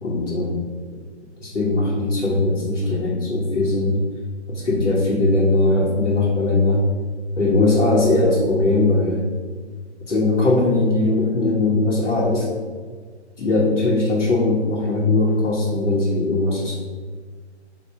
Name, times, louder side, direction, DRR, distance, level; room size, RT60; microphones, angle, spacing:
voice 1, 0.0-0.7 1.4-4.0 4.5-6.8 7.4-9.2 10.1-12.5 13.4-16.8, left 2 dB, 80° left, -6 dB, 1.1 m, -20 dB
4.2 x 2.6 x 4.6 m, 1.5 s
figure-of-eight pair, 145°, 35 cm